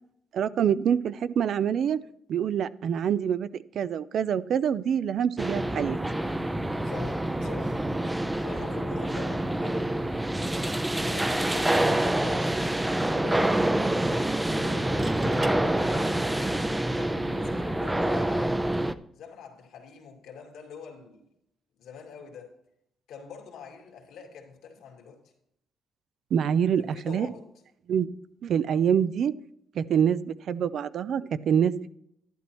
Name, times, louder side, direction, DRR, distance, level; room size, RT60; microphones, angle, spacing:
voice 1, 0.3-2.0 2.3-6.0 26.3-27.3 27.9-28.1 28.4-29.3 29.8-31.9, right 8 dB, 65° right, 0.5 m, -26 dB
sound 1, 5.4-18.9, right 1 dB, 10° right, 0.6 m, -27 dB
voice 2, 6.8-7.8 8.3-10.1 10.5-12.6 13.2-14.3 14.6-18.6 19.1-21.2 21.8-22.5 23.1-25.2 26.8-27.5, left 6 dB, 85° left, 2.3 m, -44 dB
sound 2, 14.8-15.6 17.4-17.6, right 4 dB, 40° right, 1.1 m, -43 dB
11.5 x 11.0 x 3.1 m
cardioid pair, 90°, 0 cm